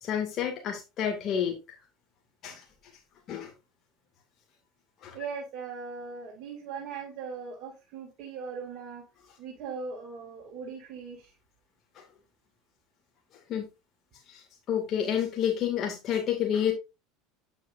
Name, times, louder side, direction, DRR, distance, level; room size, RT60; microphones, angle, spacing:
voice 1, 0.0-1.5 2.4-2.6 3.3-3.5 5.0-5.2 13.5-13.6 14.7-16.7, left 9 dB, 45° left, 2 dB, 2.2 m, -29 dB
voice 2, 5.1-9.0 9.4-11.3, right 5 dB, 55° right, 0 dB, 2.4 m, -39 dB
9.0 x 7.9 x 2.6 m, 0.26 s
hypercardioid pair, 90°, 0 cm